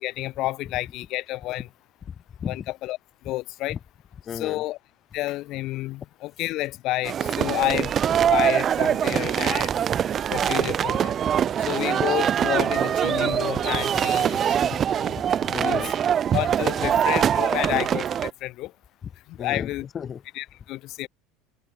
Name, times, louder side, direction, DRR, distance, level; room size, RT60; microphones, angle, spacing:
voice 1, 0.0-1.7 2.5-3.0 3.2-3.8 4.3-4.8 5.1-7.9 8.2-9.8 10.3-11.2 11.6-14.6 15.0-15.1 15.6-15.9 16.3-18.7 19.3-19.8 20.3-21.1, left 17 dB, 55° left, 0.5 m, -30 dB
voice 2, 2.1-2.7 3.7-3.8 4.2-4.6 14.6-15.9 19.4-20.2, left 8 dB, 35° left, 1.0 m, -35 dB
sound 1, 7.0-18.3, right 9 dB, 40° right, 0.7 m, -23 dB
hypercardioid pair, 85°, 0 cm